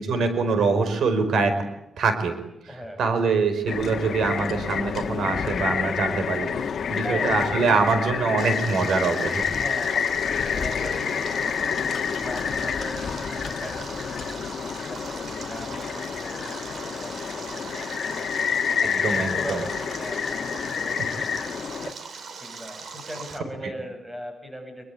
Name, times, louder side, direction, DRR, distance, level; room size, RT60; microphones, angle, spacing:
voice 1, 0.1-1.5 2.0-2.4 3.0-9.4 18.8-19.6, right 4 dB, 75° right, 9 dB, 5.0 m, -24 dB
voice 2, 2.7-3.0 7.0-7.6 9.5-11.8 12.1-17.7 18.0-18.2 18.9-21.7 22.4-24.8, equal, 10° right, 5 dB, 7.9 m, -39 dB
sound 1, 3.7-21.9, left 7 dB, 55° left, 1.8 m, -28 dB
Stream, 8.4-23.4, right 5 dB, 50° right, 3.6 m, -40 dB
27.0 x 23.5 x 8.6 m, 0.84 s
wide cardioid pair, 170°, 0 cm